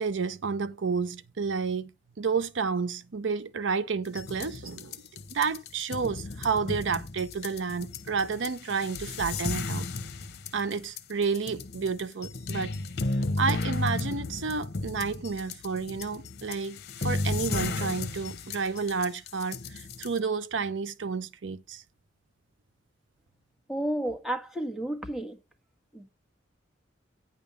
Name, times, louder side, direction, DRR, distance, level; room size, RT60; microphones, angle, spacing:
voice 1, 0.0-1.9 2.2-5.0 5.3-9.9 10.5-12.8 13.4-21.8, right 5 dB, 80° right, 0.6 m, -30 dB
sound 1, 4.1-20.2, left 3 dB, 60° left, 1.0 m, -34 dB
voice 2, 23.7-25.4 25.9-26.1, right 1 dB, ahead, 1.4 m, -32 dB
9.8 x 3.5 x 7.0 m
head